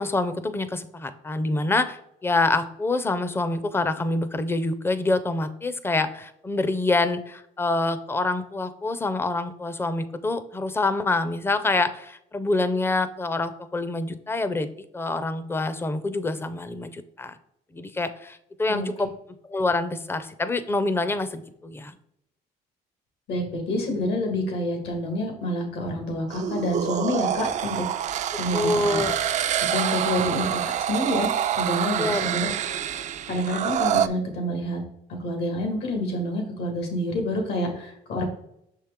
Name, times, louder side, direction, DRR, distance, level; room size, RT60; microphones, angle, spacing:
voice 1, 0.0-17.4 17.7-19.1 19.5-22.0 28.3-29.2 32.0-32.6, left 2 dB, 15° left, 12 dB, 0.5 m, -26 dB
voice 2, 23.3-27.8 28.4-29.1 29.7-34.8 35.2-38.3, left 1 dB, 75° left, 3 dB, 1.9 m, -28 dB
sound 1, 26.3-34.1, right 10 dB, 45° right, 0.4 m, -26 dB
6.2 x 4.5 x 3.6 m, 0.77 s
cardioid pair, 110°, 17 cm